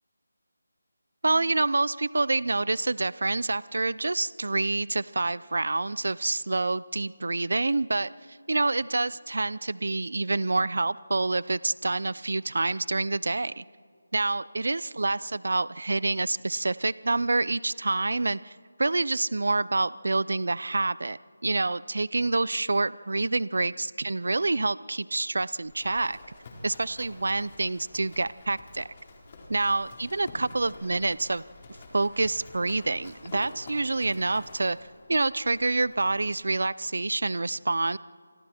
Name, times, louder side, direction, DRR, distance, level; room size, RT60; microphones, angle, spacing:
voice 1, 1.2-13.6 14.1-26.2 26.6-28.9 29.5-31.4 31.9-34.8 35.1-38.0, right 2 dB, 70° right, 20 dB, 0.6 m, -27 dB
Livestock farm animals working animals, 25.7-36.4, left 2 dB, 30° left, 4.1 m, -48 dB
29.5 x 25.5 x 4.5 m, 2.1 s
figure-of-eight pair, 165°, 0 cm